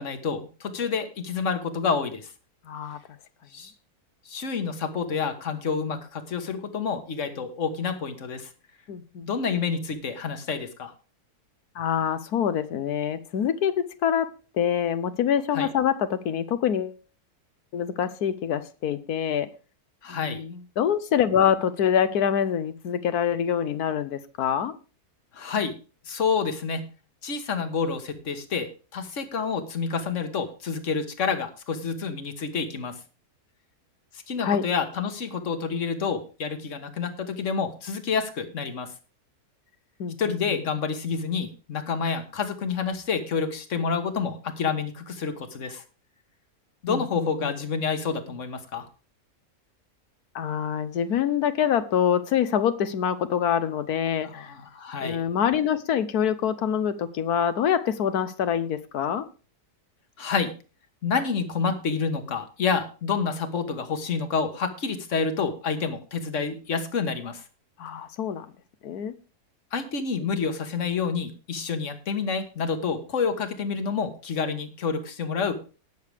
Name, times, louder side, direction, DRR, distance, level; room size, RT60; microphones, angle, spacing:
voice 1, 0.0-2.3 3.5-3.7 4.2-8.5 9.2-10.9 15.5-15.7 20.0-20.4 25.3-25.7 26.1-26.8 27.2-32.9 34.1-38.9 40.2-45.8 46.8-48.9 54.2-55.2 60.2-60.5 61.0-67.4 69.7-75.6, left 5 dB, 55° left, 8 dB, 1.7 m, -28 dB
voice 2, 2.7-3.0 8.9-9.3 11.7-14.3 14.5-17.0 17.7-19.5 20.1-24.7 34.4-34.7 40.0-40.4 46.9-47.5 50.3-54.5 55.0-59.2 67.8-68.5 68.8-69.1, left 8 dB, 80° left, 12 dB, 1.3 m, -25 dB
19.0 x 6.7 x 3.5 m, 0.34 s
omnidirectional pair, 1.6 m